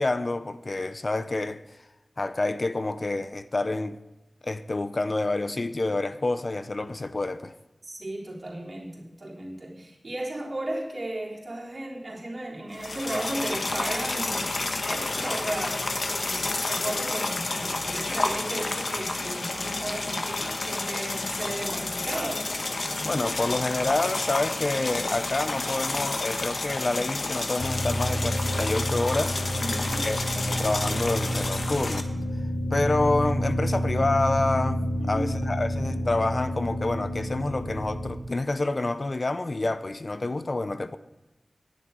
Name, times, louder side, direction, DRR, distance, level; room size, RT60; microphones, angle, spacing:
voice 1, 0.0-1.6 2.2-4.0 4.4-7.5 22.9-29.4 30.0-32.1 32.7-41.0, left 2 dB, 50° left, 0.6 m, -28 dB
voice 2, 7.8-14.5 14.8-22.5 29.6-30.1 35.0-35.4, right 1 dB, 55° right, 3.6 m, -35 dB
sound 1, 12.7-32.0, left 2 dB, 65° left, 1.2 m, -30 dB
sound 2, 27.6-38.1, equal, 80° left, 2.9 m, -29 dB
10.5 x 7.4 x 9.5 m
wide cardioid pair, 80°, 0 cm